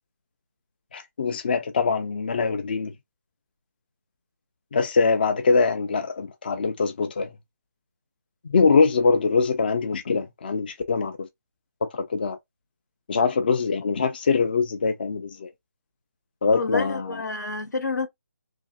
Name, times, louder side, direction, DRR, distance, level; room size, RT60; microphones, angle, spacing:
voice 1, 0.9-2.9 4.7-7.3 8.5-11.3 11.8-12.4 13.1-15.5 16.4-17.2, left 4 dB, 35° left, 0.3 m, -23 dB
voice 2, 16.5-18.1, left 3 dB, 85° left, 0.9 m, -29 dB
2.7 x 2.4 x 2.3 m
figure-of-eight pair, 165°, 9 cm